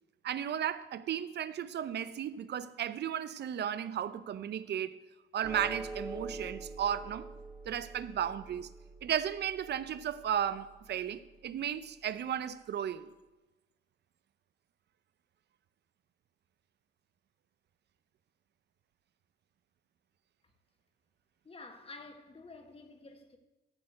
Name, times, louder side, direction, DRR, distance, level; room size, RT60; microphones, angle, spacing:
voice 1, 0.2-4.9 5.3-7.3 7.7-8.7 9.0-13.1, right 9 dB, 60° right, 0.7 m, -34 dB
sound 1, 5.4-12.0, right 2 dB, 15° right, 0.9 m, -46 dB
voice 2, 21.4-23.4, left 3 dB, 30° left, 1.5 m, -50 dB
13.0 x 4.3 x 7.9 m
cardioid pair, 90°, 20 cm